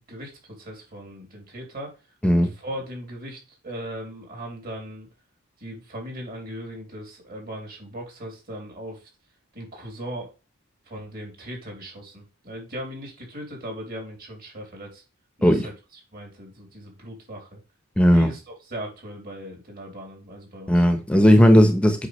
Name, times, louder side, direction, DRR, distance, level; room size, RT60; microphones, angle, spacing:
voice 1, 0.0-2.0 2.3-5.1 5.6-9.1 9.5-10.3 10.8-15.0 15.4-17.6 18.1-20.9, equal, 45° right, 3.3 m, -38 dB
voice 2, 18.0-18.3 20.7-22.1, equal, 5° left, 1.0 m, -16 dB
8.3 x 5.9 x 3.3 m
head